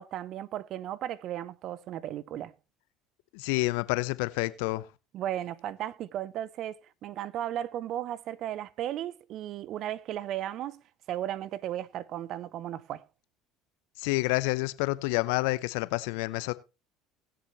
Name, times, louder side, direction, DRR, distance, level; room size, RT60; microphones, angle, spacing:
voice 1, 0.0-2.5 5.1-10.8 11.1-13.0, right 12 dB, 55° right, 0.6 m, -35 dB
voice 2, 3.3-4.9 14.0-16.5, left 21 dB, 75° left, 0.7 m, -28 dB
19.5 x 6.9 x 3.0 m
hypercardioid pair, 75°, 0 cm